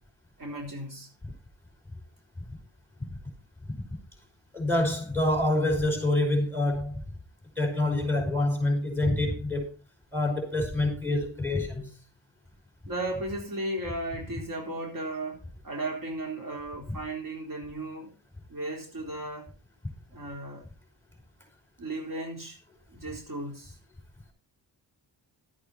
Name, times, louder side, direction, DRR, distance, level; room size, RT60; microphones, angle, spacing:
voice 1, 0.4-1.1 12.9-18.1 18.5-19.5 20.1-20.6 21.8-22.6 22.9-23.8, right 1 dB, 50° right, 4.0 m, -35 dB
voice 2, 4.5-7.0 7.6-9.7 10.1-11.9, left 1 dB, 5° left, 5.2 m, -26 dB
13.0 x 8.5 x 4.3 m
cardioid pair, 95°, 42 cm